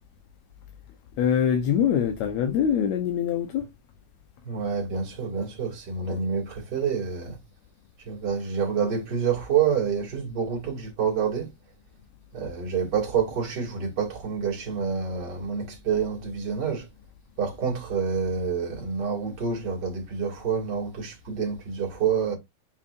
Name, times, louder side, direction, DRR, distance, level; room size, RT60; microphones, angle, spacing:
voice 1, 1.2-3.7, left 8 dB, 70° left, 1.9 m, -24 dB
voice 2, 4.4-7.4 8.1-11.5 12.3-16.9 17.4-22.4, right 6 dB, 35° right, 2.6 m, -27 dB
6.9 x 5.7 x 2.5 m
omnidirectional pair, 3.7 m